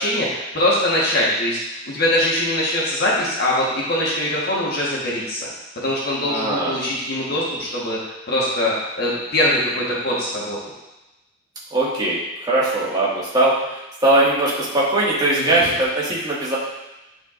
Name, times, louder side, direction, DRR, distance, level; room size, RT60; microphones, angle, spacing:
voice 1, 0.0-5.5 5.7-8.0 8.3-10.6 15.4-15.6, left 1 dB, 55° left, -5 dB, 1.4 m, -22 dB
voice 2, 6.2-6.8 11.7-13.6 14.0-16.6, right 2 dB, 20° right, -8 dB, 1.9 m, -20 dB
10.0 x 4.5 x 2.6 m, 0.99 s
head